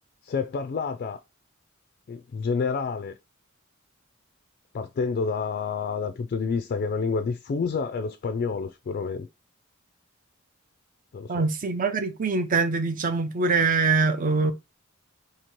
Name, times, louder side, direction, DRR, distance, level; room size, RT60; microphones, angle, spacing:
voice 1, 0.2-1.2 2.1-3.2 4.7-9.3 11.1-11.4, left 5 dB, 45° left, 0.3 m, -29 dB
voice 2, 11.3-14.5, right 4 dB, 40° right, 0.5 m, -23 dB
2.9 x 2.8 x 4.4 m
head